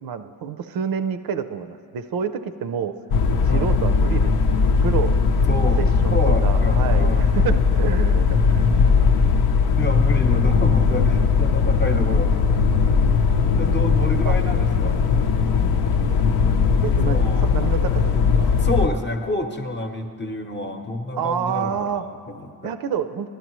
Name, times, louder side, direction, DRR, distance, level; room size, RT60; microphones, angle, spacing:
voice 1, 0.0-2.9 3.4-5.1 5.8-9.0 14.0-14.3 16.8-18.7 21.2-22.0 22.6-23.3, right 7 dB, 65° right, 9 dB, 0.6 m, -29 dB
sound 1, 3.1-18.9, left 5 dB, 70° left, 0.7 m, -19 dB
voice 2, 5.5-5.8 6.1-7.3 9.8-13.3 13.6-15.3 17.0-17.5 18.5-22.7, left 1 dB, 25° left, 5 dB, 0.8 m, -29 dB
12.0 x 11.5 x 3.1 m, 2.5 s
cardioid pair, 80°, 39 cm